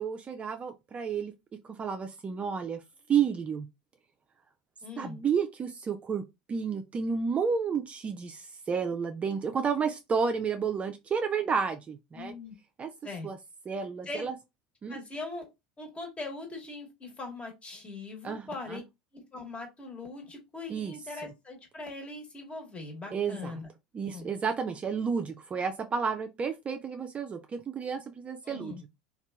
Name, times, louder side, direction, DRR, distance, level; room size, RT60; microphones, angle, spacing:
voice 1, 0.0-1.3 1.6-2.8 3.1-3.7 5.0-6.2 6.5-12.3 12.8-12.9 13.2-13.4 13.7-14.3 14.8-15.0 18.2-18.8 20.7-20.9 23.1-23.5 23.9-28.9, right 6 dB, 25° right, 0.4 m, -31 dB
voice 2, 4.8-5.2 12.1-12.6 13.0-13.3 14.0-14.3 14.9-15.5 15.8-18.8 19.1-23.7 24.0-24.3 28.4-28.8, left 3 dB, 25° left, 1.2 m, -41 dB
2.7 x 2.3 x 2.2 m
hypercardioid pair, 80°, 5 cm